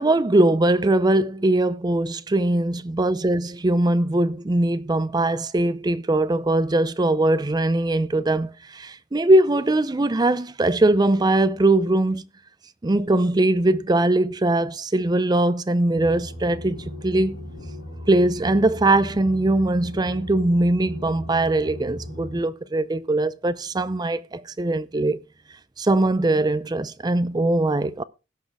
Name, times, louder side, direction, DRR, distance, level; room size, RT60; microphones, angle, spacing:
voice 1, 0.0-12.3 12.8-17.3 18.1-25.2 25.8-28.0, right 2 dB, 20° right, 0.4 m, -21 dB
sound 1, 16.0-22.4, left 1 dB, 60° left, 3.7 m, -37 dB
17.0 x 6.2 x 3.5 m
head